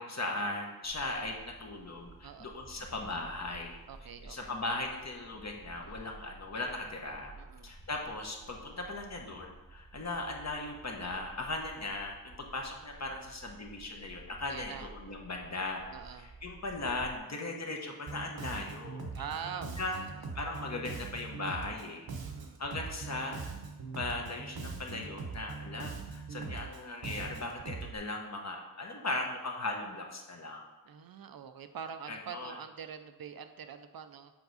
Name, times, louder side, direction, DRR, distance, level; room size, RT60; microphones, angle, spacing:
voice 1, 0.0-3.8 4.2-7.3 7.6-15.8 16.1-20.0 20.3-22.1 22.6-23.5 23.9-30.6 32.1-32.5, left 2 dB, 45° left, 1 dB, 1.1 m, -38 dB
sound 1, 0.8-17.2, right 2 dB, 20° right, 0.8 m, -53 dB
voice 2, 2.2-2.5 3.9-4.6 5.8-6.1 7.4-7.7 14.5-14.9 15.9-16.3 19.1-20.1 22.2-22.6 30.8-34.3, right 7 dB, 70° right, 8 dB, 0.6 m, -44 dB
Bass guitar, 18.1-28.0, right 4 dB, 90° right, 1.1 m, -41 dB
7.1 x 4.6 x 4.1 m, 1.2 s
wide cardioid pair, 85°, 37 cm